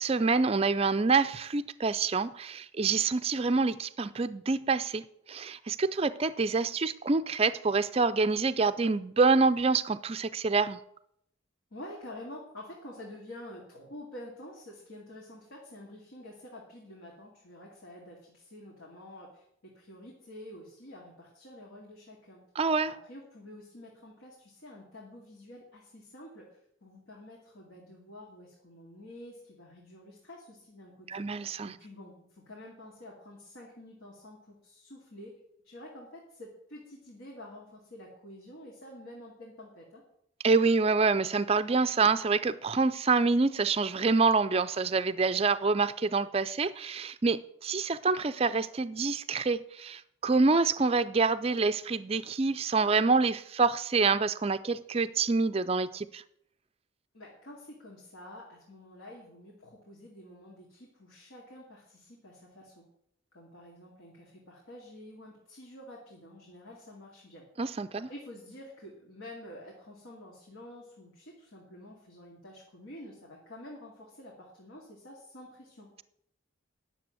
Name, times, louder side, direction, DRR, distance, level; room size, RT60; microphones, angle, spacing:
voice 1, 0.0-10.8 22.6-22.9 31.1-31.8 40.4-56.2 67.6-68.1, right 4 dB, 30° right, 12 dB, 0.4 m, -27 dB
voice 2, 11.7-22.4 22.9-31.2 31.7-35.3 35.6-40.0 57.1-62.9 63.3-67.4 67.9-75.9, left 1 dB, 75° left, -3 dB, 2.5 m, -48 dB
10.5 x 7.0 x 7.7 m, 0.73 s
head